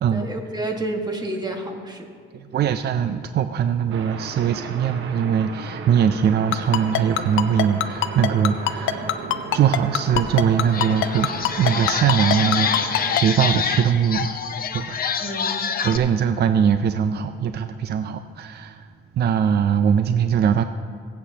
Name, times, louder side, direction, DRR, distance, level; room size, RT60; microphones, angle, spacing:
voice 1, 0.1-2.1 15.2-15.7, right 2 dB, 20° right, 2 dB, 1.6 m, -30 dB
voice 2, 2.5-9.2 9.5-11.3 11.6-14.3 14.7-15.0 15.8-18.9 19.2-20.6, right 8 dB, 55° right, 9 dB, 0.5 m, -21 dB
sound 1, 3.9-13.2, right 5 dB, 80° right, 1.1 m, -35 dB
Ringtone, 6.5-13.2, left 14 dB, 85° left, 0.6 m, -22 dB
sound 2, 10.1-10.2 10.6-16.0, left 6 dB, 50° left, 0.8 m, -26 dB
23.0 x 8.1 x 2.9 m, 2.3 s
cardioid pair, 90°, 20 cm